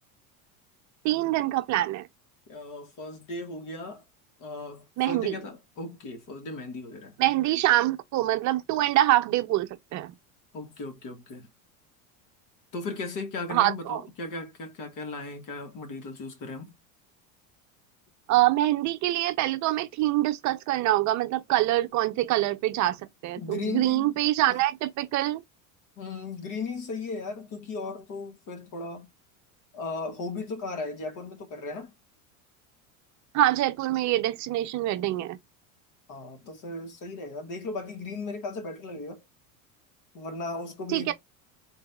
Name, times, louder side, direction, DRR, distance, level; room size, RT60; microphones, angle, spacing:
voice 1, 1.0-2.1 5.0-5.3 7.2-10.1 13.5-14.0 18.3-23.0 23.2-25.4 33.3-35.4 40.9-41.1, right 15 dB, 45° right, 0.6 m, -25 dB
voice 2, 2.5-4.0 4.4-7.2 10.5-11.5 12.7-16.7 23.4-24.2 24.5-24.6 26.0-29.1 29.7-31.9 36.1-39.2 40.1-41.1, left 3 dB, 50° left, 1.8 m, -36 dB
3.9 x 2.7 x 3.5 m
supercardioid pair, 115°, 41 cm